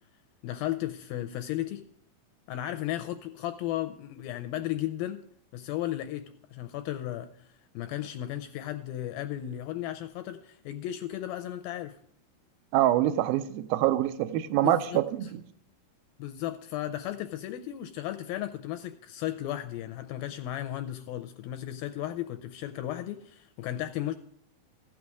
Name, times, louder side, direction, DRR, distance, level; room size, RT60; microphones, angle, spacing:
voice 1, 0.4-1.8 2.5-5.2 5.5-7.5 7.7-12.0 14.6-15.0 16.2-24.2, left 13 dB, 85° left, 8 dB, 2.2 m, -35 dB
voice 2, 12.7-15.1 15.3-15.4, right 14 dB, 80° right, 12 dB, 2.2 m, -25 dB
15.0 x 6.3 x 4.7 m, 0.67 s
omnidirectional pair, 4.6 m